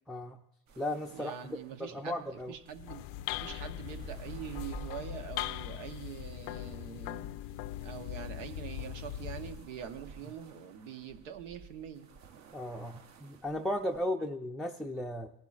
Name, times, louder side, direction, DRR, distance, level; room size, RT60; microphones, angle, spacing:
voice 1, 0.1-0.4 0.8-2.5 12.5-15.3, left 1 dB, ahead, 1 dB, 0.4 m, -36 dB
sound 1, 0.7-14.1, right 5 dB, 50° right, 0.9 m, -54 dB
voice 2, 1.1-3.0 3.4-7.3 7.8-12.1, right 8 dB, 85° right, 8 dB, 1.0 m, -44 dB
sound 2, 2.7-9.7, left 13 dB, 60° left, 0.5 m, -40 dB
18.5 x 10.5 x 2.4 m, 0.79 s
hypercardioid pair, 80°, 37 cm